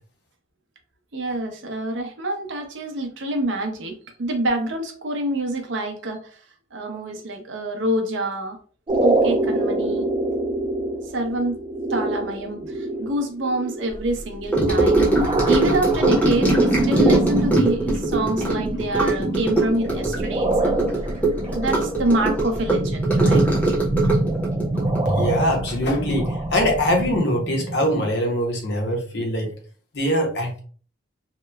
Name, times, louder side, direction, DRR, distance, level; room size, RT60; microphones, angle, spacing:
voice 1, 1.1-3.9 4.2-6.2 6.7-8.6 9.0-10.1 11.1-11.6 11.9-15.0 15.5-20.8 21.5-23.4, right 1 dB, 85° right, 4 dB, 0.6 m, -26 dB
sound 1, 8.9-28.1, right 2 dB, 25° right, 0.4 m, -26 dB
Gurgling / Sink (filling or washing) / Trickle dribble, 14.5-26.2 26.4-26.8 27.0-27.1, right 2 dB, 10° left, 0.7 m, -21 dB
voice 2, 25.0-29.5 29.9-30.6, equal, 65° left, 2 dB, 0.7 m, -22 dB
2.8 x 2.1 x 2.2 m, 0.42 s
head